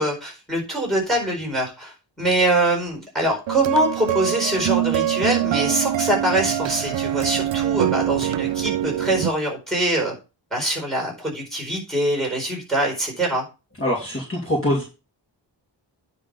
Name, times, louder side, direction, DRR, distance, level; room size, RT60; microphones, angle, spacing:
voice 1, 0.0-10.1 10.5-13.4, right 1 dB, ahead, 1 dB, 4.4 m, -23 dB
sound 1, 3.5-9.3, right 12 dB, 75° right, 0.6 m, -24 dB
voice 2, 13.8-14.8, left 1 dB, 30° left, -3 dB, 2.5 m, -23 dB
9.8 x 3.8 x 6.6 m, 0.30 s
wide cardioid pair, 150°, 45 cm